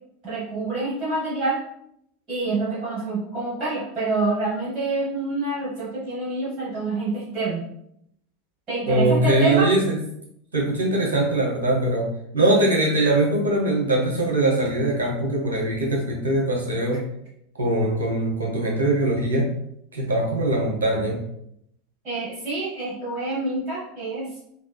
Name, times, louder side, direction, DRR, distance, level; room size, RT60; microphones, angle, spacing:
voice 1, 0.2-1.6 2.3-7.7 8.7-9.7 22.0-24.3, right 2 dB, 40° right, -9 dB, 1.3 m, -27 dB
voice 2, 8.8-10.0 10.5-12.1 12.3-17.0 17.6-19.5 19.9-21.2, right 1 dB, 70° right, -2 dB, 1.0 m, -22 dB
3.7 x 2.7 x 2.3 m, 0.74 s
figure-of-eight pair, 80°, 0 cm